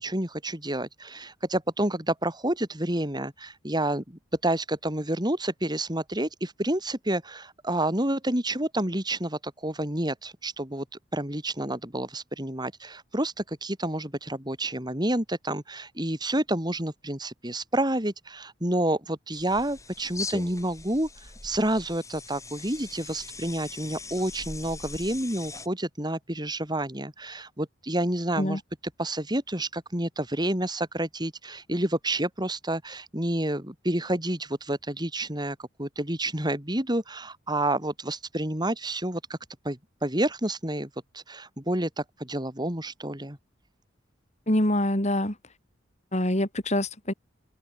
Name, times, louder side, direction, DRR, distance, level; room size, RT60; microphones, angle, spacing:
voice 1, 0.0-10.9 11.1-21.1 21.4-28.6 29.0-39.4 39.6-40.9 41.1-43.4, right 1 dB, 20° right, 7.2 m, -29 dB
sound 1, 19.3-25.7, left 3 dB, 15° left, 7.2 m, -41 dB
voice 2, 44.5-45.3 46.1-47.1, left 1 dB, 35° left, 4.9 m, -25 dB
open air
head